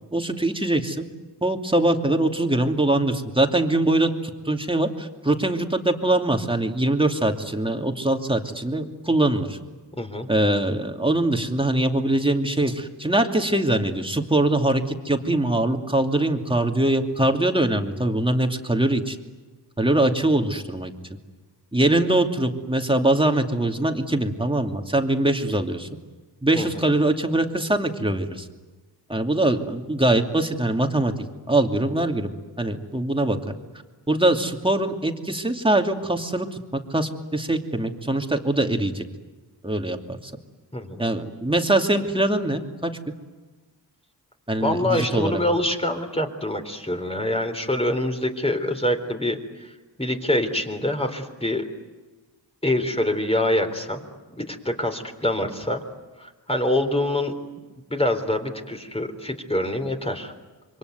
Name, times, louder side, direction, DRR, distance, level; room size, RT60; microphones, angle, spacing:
voice 1, 0.1-1.0 1.4-9.6 10.3-19.2 19.8-20.9 21.7-25.9 26.4-28.5 29.1-31.1 31.5-32.3 32.6-33.4 34.1-39.0 39.6-40.3 41.0-42.9 44.5-45.4, right 1 dB, 10° right, 4 dB, 2.7 m, -22 dB
voice 2, 9.9-10.3 26.6-26.8 40.7-41.0 44.6-49.7 50.0-51.7 52.6-54.0 54.4-55.8 56.2-57.4 57.9-60.3, left 1 dB, 15° left, 5 dB, 3.8 m, -25 dB
27.0 x 23.5 x 9.4 m, 1.2 s
cardioid pair, 65°, 41 cm